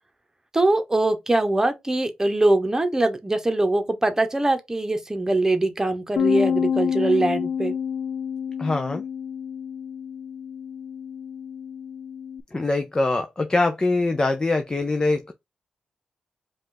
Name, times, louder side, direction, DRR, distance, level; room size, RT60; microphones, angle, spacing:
voice 1, 0.5-7.7, right 2 dB, 20° right, 1.0 m, -22 dB
Bass guitar, 6.2-12.4, left 7 dB, 75° left, 0.4 m, -28 dB
voice 2, 8.6-9.0 12.5-15.3, left 2 dB, 25° left, 0.6 m, -23 dB
5.0 x 2.5 x 3.9 m
cardioid pair, 80°, 3 cm